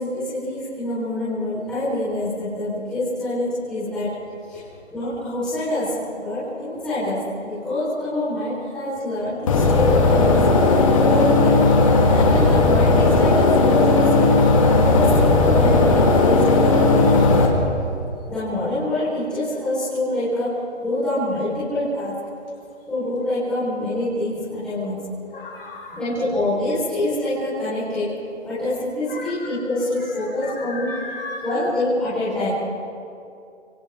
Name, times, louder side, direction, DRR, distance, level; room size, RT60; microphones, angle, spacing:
voice 1, 0.0-4.1 4.5-4.6 4.9-14.3 14.7-17.5 18.3-22.2 22.9-25.2 25.9-28.1 28.4-31.0 31.4-32.7, left 1 dB, ahead, -13 dB, 4.7 m, -26 dB
sound 1, 9.5-17.5, left 3 dB, 30° left, 2.1 m, -16 dB
voice 2, 25.3-26.0 29.1-29.5 30.4-31.6, left 3 dB, 50° left, -3 dB, 5.9 m, -35 dB
29.0 x 25.5 x 3.8 m, 2.5 s
hypercardioid pair, 175°, 36 cm